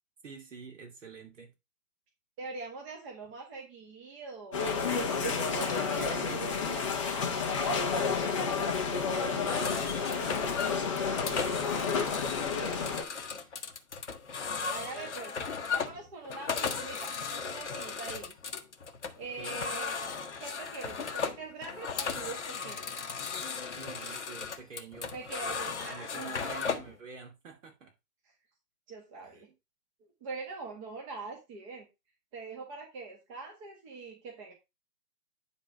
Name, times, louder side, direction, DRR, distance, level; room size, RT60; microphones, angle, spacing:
voice 1, 0.2-1.5 5.1-6.4 7.8-13.7 19.3-19.6 23.7-25.1 25.8-27.9 29.2-29.3, right 5 dB, 50° right, 2.5 m, -48 dB
voice 2, 2.4-7.0 14.7-15.3 15.7-18.3 19.2-20.0 20.4-23.1 25.1-26.7 28.9-29.5 30.2-31.9 32.3-34.5, right 4 dB, 20° right, 1.7 m, -43 dB
sound 1, 4.5-13.0, left 5 dB, 20° left, 0.8 m, -30 dB
sound 2, 9.3-26.9, left 5 dB, 45° left, 1.0 m, -36 dB
9.8 x 3.9 x 4.9 m
figure-of-eight pair, 135°, 48 cm